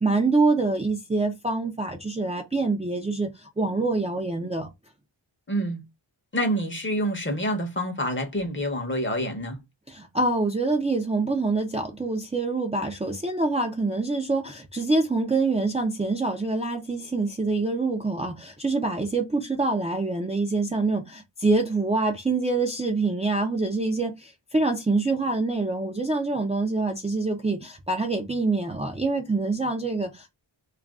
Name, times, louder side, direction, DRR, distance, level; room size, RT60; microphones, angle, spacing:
voice 1, 0.0-4.7 9.9-30.3, right 3 dB, 15° right, 0.4 m, -25 dB
voice 2, 5.5-5.8 6.3-9.6, equal, 25° left, 0.7 m, -27 dB
2.4 x 2.2 x 3.3 m
wide cardioid pair, 110°, 48 cm